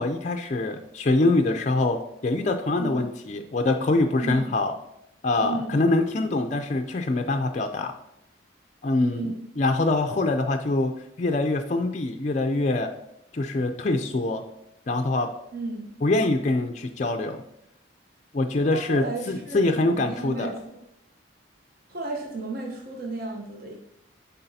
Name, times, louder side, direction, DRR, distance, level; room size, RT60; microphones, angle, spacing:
voice 1, 0.0-4.7 5.2-7.9 8.8-10.9 11.2-12.9 13.3-14.4 14.9-15.3 16.0-17.4 18.3-20.5, left 2 dB, 35° left, 5 dB, 0.4 m, -24 dB
voice 2, 5.4-5.8 9.0-9.4 15.5-15.9 18.7-20.8 21.9-23.8, right 2 dB, 50° right, 0 dB, 0.8 m, -34 dB
9.6 x 4.0 x 2.7 m, 0.80 s
head